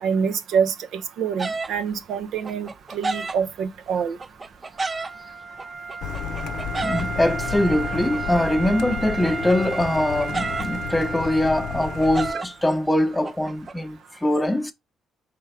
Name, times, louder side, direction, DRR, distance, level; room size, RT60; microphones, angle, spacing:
voice 1, 0.0-4.2, right 6 dB, 75° right, 0.6 m, -26 dB
sound 1, 1.4-1.8 2.1-3.7 4.2-5.1 5.6-7.3 7.7-9.0 9.2-11.0 11.3-11.4 11.8-13.7, right 3 dB, 30° right, 0.4 m, -31 dB
Wind instrument woodwind instrument, 4.8-12.6, right 5 dB, 50° right, 1.4 m, -33 dB
Car, 6.0-12.3, left 8 dB, 80° left, 0.6 m, -32 dB
voice 2, 6.8-14.7, left 1 dB, 10° left, 0.8 m, -23 dB
4.5 x 3.5 x 3.3 m
cardioid pair, 90°, 0 cm